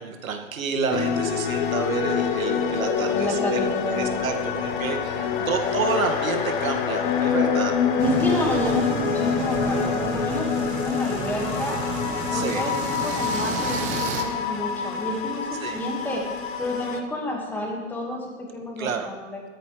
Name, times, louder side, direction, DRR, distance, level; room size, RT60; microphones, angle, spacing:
voice 1, 0.0-3.6 3.9-7.8 12.3-12.6 15.6-15.8 18.8-19.1, right 5 dB, 85° right, 3 dB, 2.1 m, -29 dB
sound 1, 0.9-17.0, left 7 dB, 35° left, 1.1 m, -26 dB
voice 2, 3.1-4.0 5.4-5.6 8.0-11.8 12.3-16.2 16.6-19.4, left 1 dB, 5° left, -1 dB, 1.8 m, -30 dB
sound 2, 8.0-14.2, right 6 dB, 20° right, 1.0 m, -32 dB
17.0 x 13.0 x 3.3 m, 1.5 s
hypercardioid pair, 155°, 40 cm